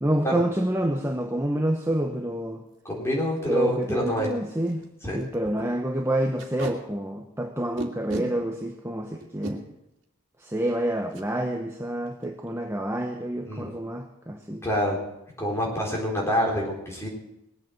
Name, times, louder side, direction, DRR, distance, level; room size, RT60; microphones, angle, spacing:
voice 1, 0.0-2.6 3.5-4.9 5.1-9.6 10.4-14.6, right 1 dB, 10° right, 2 dB, 0.9 m, -28 dB
Packing tape duct tape, 2.7-2.9 3.4-3.5 3.7-3.8 4.3-4.4 4.7-4.8 5.2-5.4 6.4-6.7 7.8-8.3 9.2-9.5 11.1-11.3 11.6-11.8 12.1-12.5, right 2 dB, 55° right, 2.6 m, -35 dB
voice 2, 2.8-4.3 5.0-5.2 13.5-13.7 14.6-15.0 15.4-17.1, equal, 10° left, -2 dB, 4.1 m, -26 dB
20.0 x 8.5 x 7.6 m, 0.86 s
head